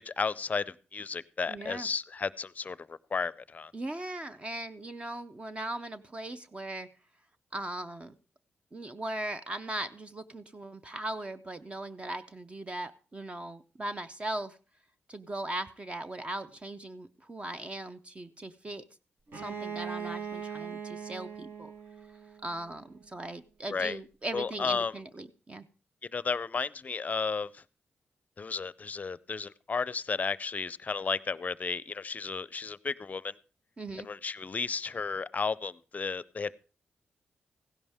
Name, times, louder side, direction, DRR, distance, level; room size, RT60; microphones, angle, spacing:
voice 1, 0.0-3.7 23.7-24.0 24.3-24.9 26.0-27.6 28.4-33.3 34.0-36.5, left 5 dB, 40° left, 19 dB, 0.5 m, -33 dB
voice 2, 1.5-1.9 3.7-6.9 7.5-8.1 8.7-14.6 15.1-18.8 19.3-21.7 22.4-25.6 33.8-34.1, right 1 dB, 30° right, 10 dB, 0.5 m, -39 dB
Bowed string instrument, 19.3-23.0, right 7 dB, 60° right, 1.5 m, -40 dB
16.0 x 11.0 x 3.5 m, 0.36 s
cardioid pair, 80°, 4 cm